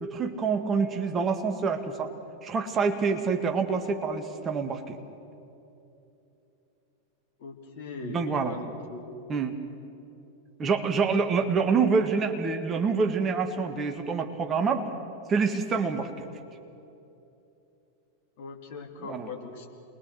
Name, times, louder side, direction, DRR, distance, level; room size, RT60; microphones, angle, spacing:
voice 1, 0.0-2.1 2.4-5.0 8.0-8.6 9.3-9.5 10.6-14.9 15.3-16.3 19.0-19.3, right 5 dB, 25° right, 5 dB, 1.8 m, -26 dB
voice 2, 7.4-9.1 18.4-19.7, left 4 dB, 50° left, 1 dB, 2.8 m, -40 dB
28.0 x 21.5 x 6.4 m, 2.8 s
figure-of-eight pair, 90°, 0 cm